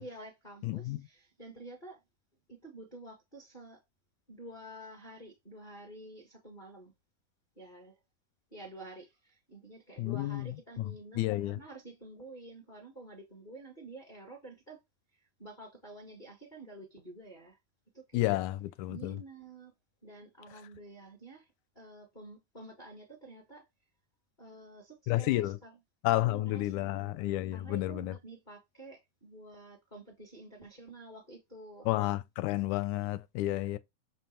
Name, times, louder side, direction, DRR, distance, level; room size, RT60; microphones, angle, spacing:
voice 1, 0.0-2.0 2.5-3.8 4.3-6.9 7.5-8.0 8.5-14.8 15.1-17.6 17.9-18.4 18.9-19.7 20.0-23.7 24.4-25.8 26.1-31.9, right 2 dB, 30° left, 0.8 m, -50 dB
voice 2, 0.6-1.0 10.0-10.5 10.8-11.6 18.1-19.2 25.1-25.6 26.0-28.2 31.9-33.8, left 16 dB, 80° left, 1.9 m, -31 dB
7.4 x 3.0 x 4.4 m
omnidirectional pair, 3.5 m